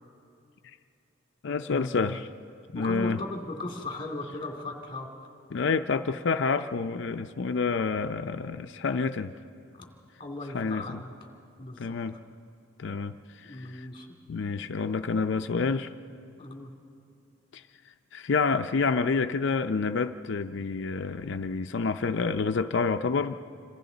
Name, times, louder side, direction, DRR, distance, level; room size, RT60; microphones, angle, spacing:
voice 1, 1.4-2.3 2.7-3.2 5.5-9.3 10.5-11.0 11.8-12.2 12.8-13.1 13.4-13.9 14.3-15.9 17.5-17.6 18.1-23.3, left 4 dB, 60° left, 8 dB, 0.5 m, -28 dB
voice 2, 2.7-5.1 9.7-9.9 10.2-11.1 11.6-12.0 13.4-14.1 16.4-16.7, left 2 dB, 25° left, 2 dB, 2.4 m, -37 dB
27.5 x 26.0 x 4.0 m, 2.5 s
head